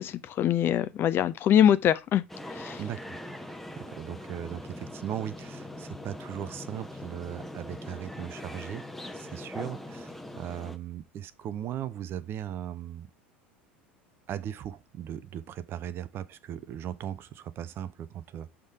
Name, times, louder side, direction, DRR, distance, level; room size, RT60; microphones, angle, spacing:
voice 1, 0.0-2.2 2.5-2.8, left 10 dB, 40° left, 0.5 m, -23 dB
sound 1, 2.3-10.8, left 1 dB, 5° left, 0.7 m, -42 dB
voice 2, 2.8-8.9 9.1-13.1 14.3-18.5, right 10 dB, 40° right, 0.5 m, -38 dB
6.4 x 3.6 x 4.7 m
figure-of-eight pair, 75°, 6 cm